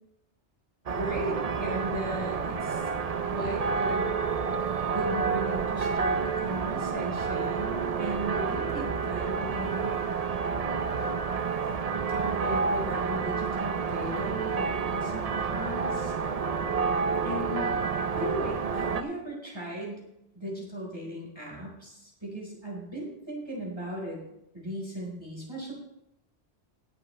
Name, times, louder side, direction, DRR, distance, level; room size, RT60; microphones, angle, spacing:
voice 1, 0.9-2.9 3.3-4.1 4.9-10.0 12.1-16.1 17.2-20.0 20.3-24.2 24.5-25.7, equal, 25° right, -3 dB, 4.3 m, -36 dB
sound 1, 0.9-19.0, right 5 dB, 40° right, 0.6 m, -29 dB
18.0 x 8.2 x 3.2 m, 0.86 s
omnidirectional pair, 1.2 m